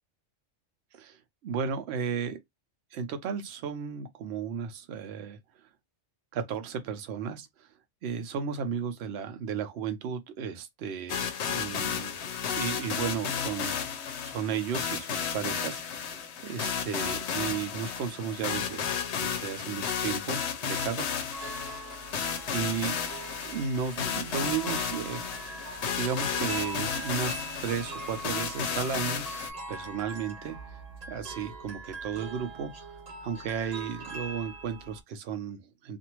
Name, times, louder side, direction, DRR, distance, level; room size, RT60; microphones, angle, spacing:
voice 1, 1.4-2.4 2.9-5.4 6.3-7.7 8.0-12.2 12.6-21.1 22.1-25.2 25.9-29.2 29.7-30.6 31.1-32.7 33.2-36.0, right 6 dB, 65° right, 0.8 m, -34 dB
sound 1, 11.1-29.5, left 7 dB, 70° left, 0.9 m, -33 dB
sound 2, 21.3-35.0, right 3 dB, 35° right, 0.9 m, -42 dB
2.6 x 2.5 x 2.9 m
omnidirectional pair, 1.3 m